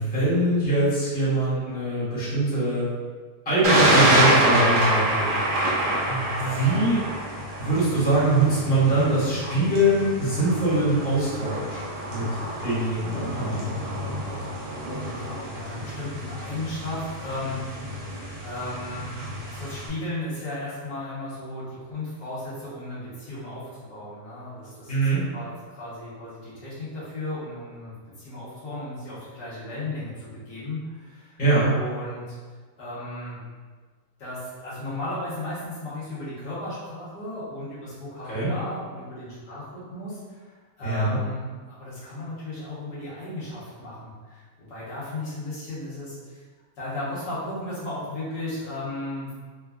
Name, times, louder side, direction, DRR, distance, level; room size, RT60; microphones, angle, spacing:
voice 1, 0.0-2.9 3.4-5.3 6.1-7.0 7.6-11.8 12.1-12.3 12.6-13.7 24.9-25.3 31.4-31.7 38.3-38.5 40.8-41.2, right 1 dB, 5° left, -12 dB, 1.1 m, -23 dB
Thunder, 3.6-19.9, right 1 dB, 65° right, 1.2 m, -27 dB
voice 2, 15.0-18.1 18.4-32.3 32.8-33.4 34.2-46.4 46.8-49.3, left 1 dB, 75° left, -10 dB, 1.7 m, -35 dB
3.7 x 2.3 x 2.3 m, 1.5 s
omnidirectional pair, 1.8 m